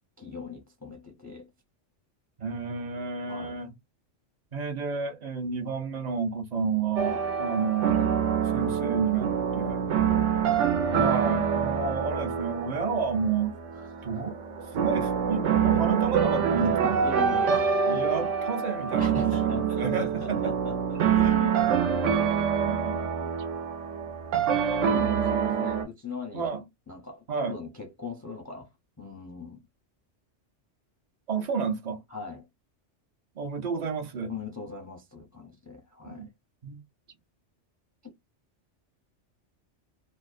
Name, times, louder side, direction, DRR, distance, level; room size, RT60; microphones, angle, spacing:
voice 1, 0.2-1.5 3.3-3.6 10.0-10.3 13.7-14.1 16.5-17.8 19.0-21.6 24.8-26.6 26.9-28.7 29.0-29.6 32.1-32.5 34.3-36.3 38.0-38.1, left 4 dB, 20° left, 0.4 m, -40 dB
voice 2, 2.4-3.7 4.5-8.2 8.5-9.9 10.9-13.5 14.0-14.4 14.7-17.0 17.9-20.5 21.2-21.4 22.7-23.1 26.3-26.6 27.3-27.6 31.3-32.0 33.4-34.3 36.0-36.3 36.6-36.8, right 5 dB, 50° right, 0.5 m, -30 dB
sound 1, 7.0-25.8, right 7 dB, 85° right, 1.0 m, -26 dB
2.6 x 2.0 x 2.4 m
omnidirectional pair, 1.2 m